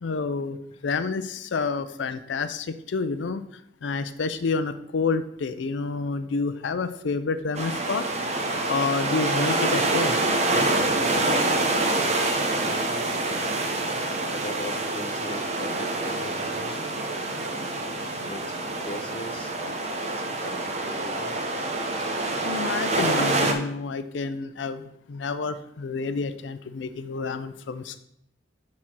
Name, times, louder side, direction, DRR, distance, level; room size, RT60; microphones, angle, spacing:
voice 1, 0.0-0.6 0.8-3.4 3.8-8.1 8.7-10.2 22.4-28.0, left 4 dB, 80° left, 11 dB, 0.4 m, -29 dB
sound 1, 7.5-23.5, right 2 dB, 35° right, 0.9 m, -26 dB
voice 2, 11.1-13.7 14.2-16.9 17.7-21.5 22.4-22.5, left 1 dB, 30° left, 7 dB, 0.7 m, -40 dB
6.6 x 4.2 x 6.0 m, 0.75 s
head